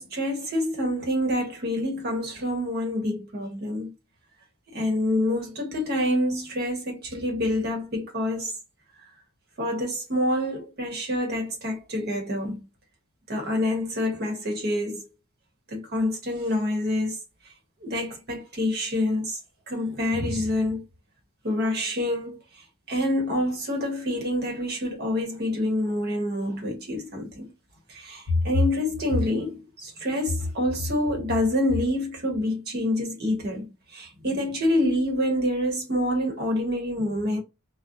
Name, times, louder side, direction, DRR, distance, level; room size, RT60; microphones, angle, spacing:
voice 1, 0.0-3.9 4.7-8.6 9.6-12.6 13.3-15.0 15.7-17.2 17.8-19.4 19.7-20.8 21.4-27.5 27.9-37.4, left 1 dB, 45° right, 1.0 m, -27 dB
2.4 x 2.1 x 2.6 m
head